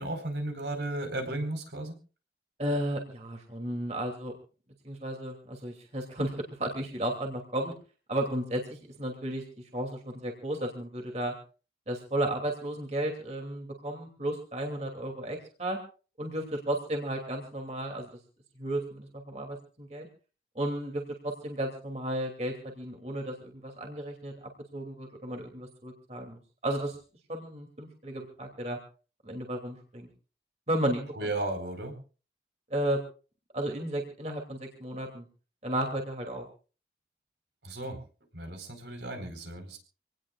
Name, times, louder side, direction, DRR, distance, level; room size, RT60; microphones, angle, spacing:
voice 1, 0.0-2.0 31.1-31.9 37.6-38.0 38.3-39.8, right 2 dB, 80° right, 5 dB, 4.6 m, -34 dB
voice 2, 2.6-4.3 4.8-7.7 8.1-9.4 9.7-11.3 11.9-15.8 16.2-18.1 18.6-20.1 20.5-24.3 24.7-27.0 27.3-28.8 29.2-30.1 30.7-31.3 32.7-33.0 33.5-35.3 35.6-36.5, right 1 dB, 35° right, 2 dB, 2.8 m, -33 dB
26.0 x 18.5 x 2.5 m, 0.37 s
head